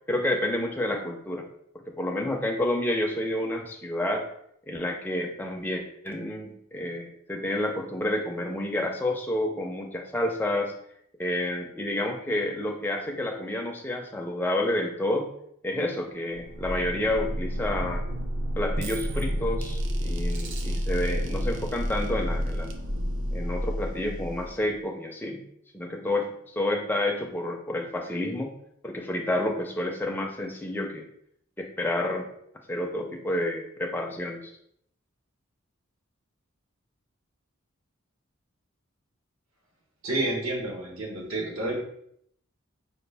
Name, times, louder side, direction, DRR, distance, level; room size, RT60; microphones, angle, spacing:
voice 1, 0.1-1.5 2.0-4.3 4.7-10.7 11.2-15.3 15.6-18.0 18.6-22.7 23.3-25.4 25.7-26.3 26.6-28.5 28.8-31.1 31.6-32.3 32.7-34.5, left 1 dB, 10° left, 1 dB, 0.4 m, -29 dB
sound 1, 16.3-24.8, equal, 55° right, 0.5 m, -30 dB
voice 2, 40.0-41.8, right 2 dB, 75° right, -1 dB, 1.1 m, -29 dB
4.9 x 2.4 x 3.3 m, 0.70 s
head